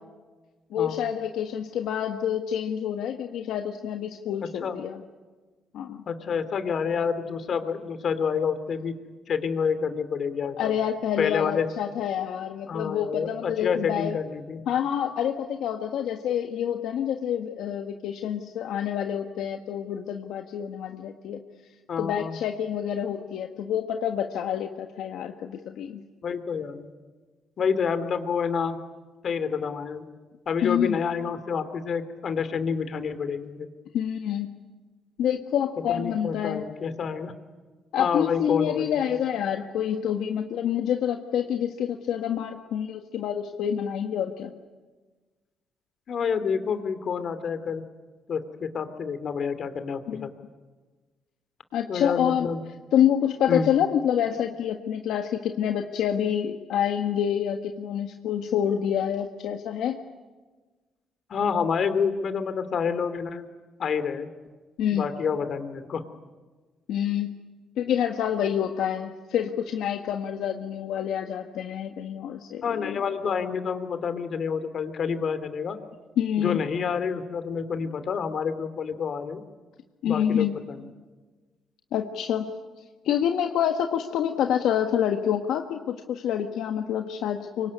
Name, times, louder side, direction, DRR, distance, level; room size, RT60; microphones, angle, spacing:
voice 1, 0.7-5.0 5.7-6.0 10.6-14.1 14.7-21.4 22.0-26.0 30.6-31.0 33.9-34.5 35.2-36.6 37.9-44.5 50.1-50.3 51.7-52.5 52.9-60.0 64.8-65.1 66.9-67.3 67.8-73.0 76.2-76.6 80.0-80.5 81.9-82.5 83.0-87.7, left 9 dB, 80° left, 4 dB, 1.5 m, -27 dB
voice 2, 6.1-8.9 9.3-10.8 11.2-11.7 12.7-14.6 21.9-22.4 26.2-26.9 27.6-28.8 29.2-30.0 30.5-33.7 35.9-37.3 38.0-38.9 46.1-47.8 48.3-50.3 51.9-52.6 53.5-53.7 61.3-63.5 63.8-64.3 64.9-66.0 72.6-75.8 76.4-79.4 80.0-80.8, left 6 dB, 55° left, 11 dB, 2.9 m, -28 dB
25.5 x 23.5 x 9.8 m, 1.3 s
cardioid pair, 90°, 0 cm